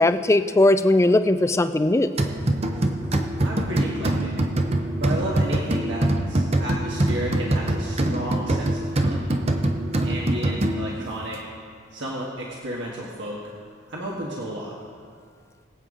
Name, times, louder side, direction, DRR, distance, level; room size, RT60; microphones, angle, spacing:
voice 1, 0.0-2.1, left 2 dB, 15° left, 10 dB, 0.4 m, -19 dB
sound 1, 2.2-11.1, right 1 dB, 35° right, 0.8 m, -24 dB
voice 2, 3.4-4.3 5.0-9.3 10.0-11.5 11.9-13.4 13.9-14.7, right 1 dB, 65° right, -3 dB, 1.5 m, -32 dB
22.0 x 8.0 x 3.8 m, 2.1 s
head